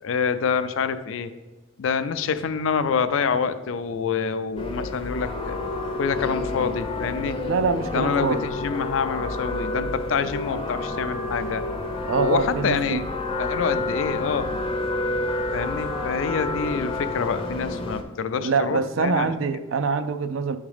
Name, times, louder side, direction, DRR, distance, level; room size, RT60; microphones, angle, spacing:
voice 1, 0.0-1.3 1.8-5.6 6.0-7.4 7.9-11.6 12.2-13.0 13.4-14.5 15.5-19.3, left 6 dB, 75° left, 11 dB, 0.4 m, -26 dB
sound 1, 4.6-18.0, left 2 dB, 30° left, 0.5 m, -29 dB
voice 2, 7.4-8.5 12.0-13.0 18.4-20.6, right 5 dB, 75° right, 10 dB, 0.4 m, -24 dB
9.3 x 3.6 x 3.4 m, 1.2 s
head